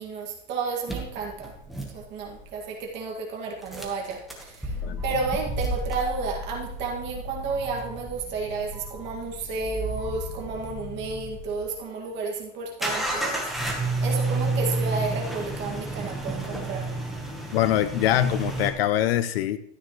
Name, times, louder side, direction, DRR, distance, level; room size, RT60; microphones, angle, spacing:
voice 1, 0.0-1.5 1.9-4.7 5.0-13.4 13.7-16.9, right 4 dB, 30° right, -1 dB, 2.1 m, -32 dB
sound 1, 0.9-2.6 3.6-11.8 12.8-18.7, right 2 dB, ahead, 1.1 m, -31 dB
voice 2, 17.5-19.6, left 12 dB, 50° left, 13 dB, 0.5 m, -23 dB
13.0 x 9.0 x 3.1 m, 0.70 s
supercardioid pair, 165°, 38 cm